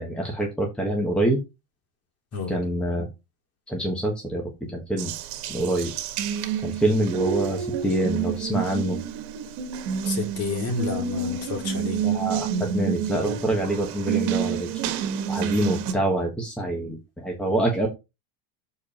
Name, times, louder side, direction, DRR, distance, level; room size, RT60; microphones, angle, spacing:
voice 1, 0.0-1.4 2.5-3.1 3.7-4.4 4.7-5.1 5.5-5.9 6.6-9.0 12.0-14.7 15.3-17.9, right 1 dB, ahead, 1.4 m, -25 dB
Water tap faucet, 5.0-15.9, right 7 dB, 55° right, 1.8 m, -29 dB
voice 2, 10.0-12.0, left 3 dB, 30° left, 2.5 m, -30 dB
7.0 x 4.9 x 4.3 m
supercardioid pair, 145°, 49 cm